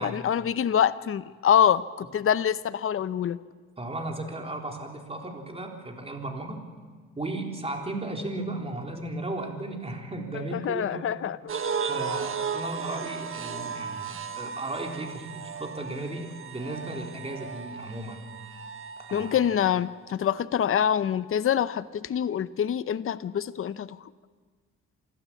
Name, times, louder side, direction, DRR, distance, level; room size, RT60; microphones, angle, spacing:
voice 1, 0.0-3.4 10.5-11.4 19.1-24.0, left 9 dB, 45° left, 14 dB, 0.8 m, -25 dB
voice 2, 3.8-6.7 7.2-11.2 11.9-18.2 19.0-19.4, right 2 dB, 20° right, 2 dB, 3.8 m, -35 dB
sound 1, 11.5-19.9, right 6 dB, 45° right, 1.6 m, -35 dB
27.5 x 12.5 x 8.6 m, 1.5 s
cardioid pair, 90°, 30 cm